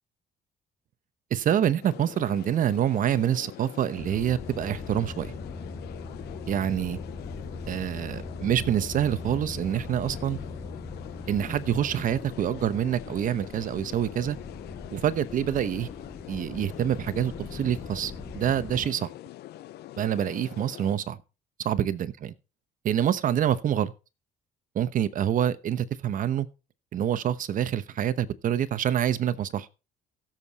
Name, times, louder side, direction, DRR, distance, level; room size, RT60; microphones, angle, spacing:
voice 1, 1.3-5.3 6.5-7.0 7.7-10.4 11.3-14.4 14.9-15.9 16.3-19.1 20.0-21.2 21.6-22.3 22.8-23.9 24.7-26.5 26.9-29.7, right 10 dB, 50° right, 0.9 m, -26 dB
sound 1, 1.8-20.9, left 14 dB, 75° left, 0.7 m, -44 dB
sound 2, 4.0-18.9, left 3 dB, 20° left, 2.0 m, -40 dB
16.0 x 7.5 x 4.1 m
cardioid pair, 110°, 17 cm